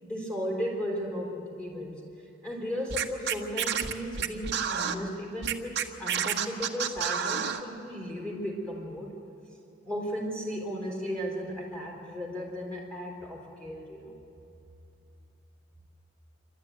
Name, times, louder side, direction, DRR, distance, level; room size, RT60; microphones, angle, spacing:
voice 1, 0.0-2.0 2.4-9.1 9.8-14.1, equal, 5° left, -3 dB, 4.0 m, -35 dB
Scratching (performance technique), 2.9-4.9 5.4-7.6, right 8 dB, 55° right, 1.3 m, -29 dB
27.5 x 13.0 x 9.3 m, 2.7 s
head